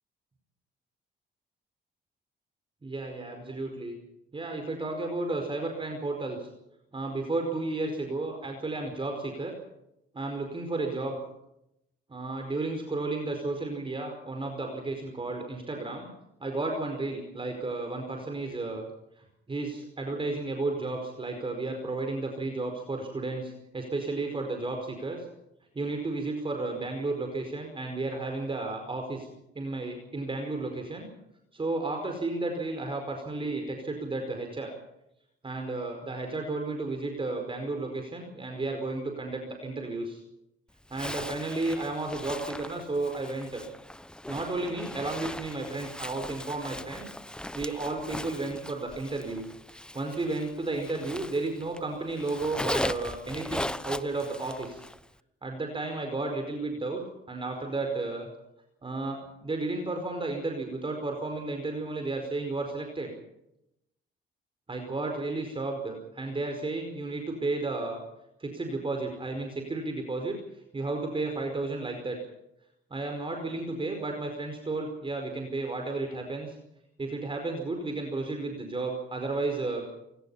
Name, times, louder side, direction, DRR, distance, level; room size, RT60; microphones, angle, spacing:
voice 1, 2.8-4.0 4.3-6.5 6.9-9.5 10.1-11.2 12.1-16.1 16.4-18.8 19.2-25.2 25.7-29.3 29.5-31.1 31.5-34.7 35.4-40.2 40.9-43.6 44.3-47.1 47.5-49.4 49.9-54.8 55.4-58.3 58.8-63.1 64.7-68.0 68.4-70.3 70.7-72.2 72.9-76.6 77.0-79.9, right 2 dB, 25° right, 4 dB, 4.9 m, -33 dB
Zipper (clothing), 40.9-51.8 52.1-55.0, left 1 dB, 5° left, 0.9 m, -38 dB
27.5 x 18.0 x 5.7 m, 0.84 s
cardioid pair, 90°, 20 cm